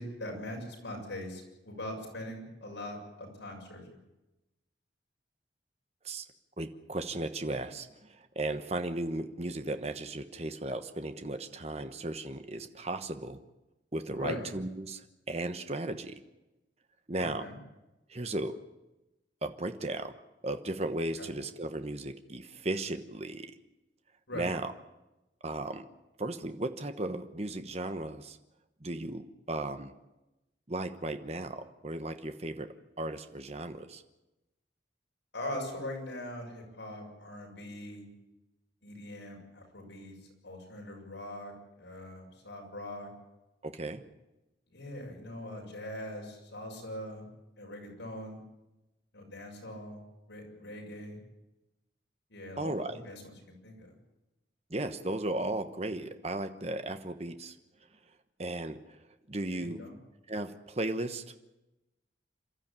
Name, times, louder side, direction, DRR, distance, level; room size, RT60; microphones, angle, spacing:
voice 1, 0.0-3.8 14.2-14.5 17.2-17.6 21.2-21.3 24.3-24.5 35.3-38.1 38.8-40.1 40.4-41.5 41.8-43.1 44.7-47.3 47.6-48.4 49.1-50.0 50.3-51.2 52.3-53.9 59.5-60.0, left 1 dB, 75° left, -1 dB, 7.1 m, -41 dB
voice 2, 6.6-13.4 13.9-15.0 15.3-16.2 17.1-17.4 18.1-18.6 19.4-20.1 20.4-23.5 24.3-24.7 25.4-25.8 26.2-28.4 28.8-29.9 30.7-34.0 43.6-44.0 52.6-53.0 54.7-57.5 58.4-58.8 59.3-59.8 60.3-61.3, right 2 dB, 35° right, 8 dB, 1.1 m, -35 dB
28.0 x 13.0 x 9.0 m, 1.0 s
head